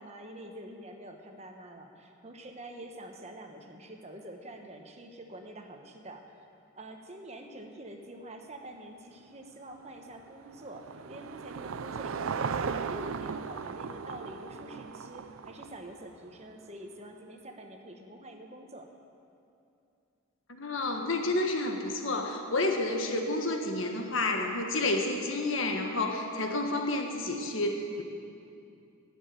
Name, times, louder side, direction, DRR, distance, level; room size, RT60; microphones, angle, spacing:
voice 1, 0.0-6.4 6.8-18.9, right 1 dB, 30° right, 4 dB, 1.2 m, -46 dB
Car passing by / Engine, 9.8-16.3, right 5 dB, 70° right, 0.5 m, -37 dB
voice 2, 20.5-28.0, left 2 dB, 65° left, 3 dB, 1.5 m, -30 dB
15.5 x 7.4 x 9.1 m, 2.6 s
head